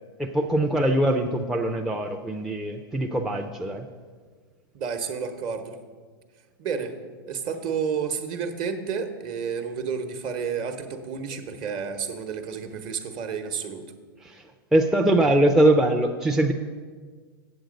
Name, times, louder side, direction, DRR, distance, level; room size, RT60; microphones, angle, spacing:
voice 1, 0.2-3.9 14.2-14.4 14.7-16.5, right 1 dB, 5° right, 2 dB, 0.4 m, -22 dB
voice 2, 4.7-5.8 6.6-7.0 7.3-13.8, right 6 dB, 40° right, 7 dB, 1.0 m, -30 dB
7.9 x 7.6 x 5.2 m, 1.5 s
hypercardioid pair, 115°, 13 cm